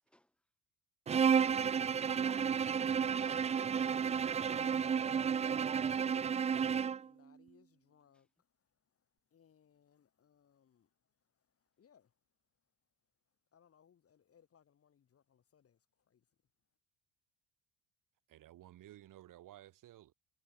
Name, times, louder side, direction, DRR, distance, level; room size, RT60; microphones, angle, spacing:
Bowed string instrument, 1.1-7.1, right 7 dB, 20° right, 0.4 m, -32 dB
voice 1, 2.0-4.2, equal, 5° left, 6.1 m, -60 dB
voice 2, 4.4-8.3 9.3-10.9 11.8-12.1 13.5-15.8 16.1-16.2, left 8 dB, 40° left, 3.1 m, -64 dB
voice 3, 18.3-20.1, right 13 dB, 55° right, 2.8 m, -55 dB
supercardioid pair, 95°, 37 cm